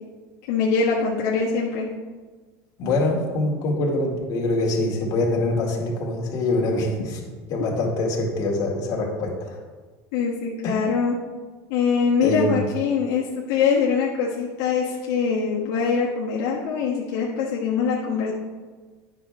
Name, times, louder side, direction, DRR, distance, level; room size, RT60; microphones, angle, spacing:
voice 1, 0.5-1.8 7.6-7.9 10.1-11.1 11.7-18.3, left 5 dB, 75° left, -5 dB, 1.3 m, -23 dB
voice 2, 2.8-7.2 7.5-9.6 10.6-10.8 12.2-12.6, left 2 dB, 45° left, -1 dB, 2.1 m, -24 dB
9.5 x 6.1 x 3.6 m, 1.4 s
supercardioid pair, 130°, 8 cm